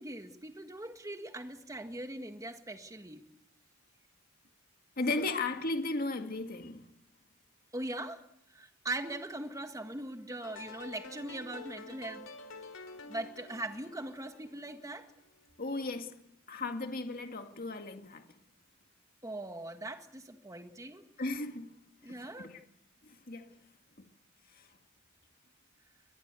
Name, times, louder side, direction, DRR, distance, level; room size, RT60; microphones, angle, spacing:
voice 1, 0.0-3.2 7.7-8.2 8.5-12.3 13.1-15.1 19.2-21.0 22.0-22.5, right 2 dB, 15° right, 1.7 m, -41 dB
voice 2, 5.0-6.8 15.6-16.1 16.5-18.2 21.2-21.7 22.0-22.6 23.0-23.5 24.0-24.1, left 2 dB, 45° left, 2.0 m, -35 dB
sound 1, 10.4-15.5, left 3 dB, 75° left, 4.3 m, -49 dB
23.5 x 21.0 x 8.3 m
head